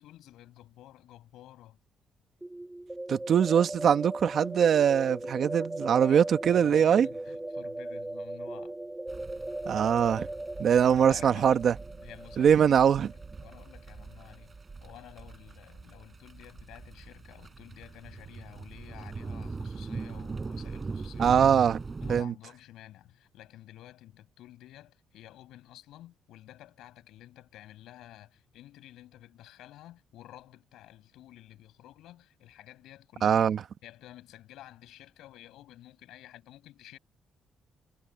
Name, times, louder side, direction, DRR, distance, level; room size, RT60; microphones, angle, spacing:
voice 1, 0.0-1.8 5.9-8.8 10.7-11.6 11.9-21.6 22.0-37.0, left 14 dB, 85° left, 6.7 m, -51 dB
sound 1, 2.4-14.1, right 1 dB, 10° right, 2.7 m, -38 dB
voice 2, 3.1-7.1 9.7-10.3 10.6-11.7 12.4-13.1 21.2-21.8 22.1-22.3 33.2-33.6, right 8 dB, 60° right, 1.4 m, -22 dB
sound 2, 9.1-22.2, right 4 dB, 30° right, 5.5 m, -41 dB
cardioid pair, 90°, 0 cm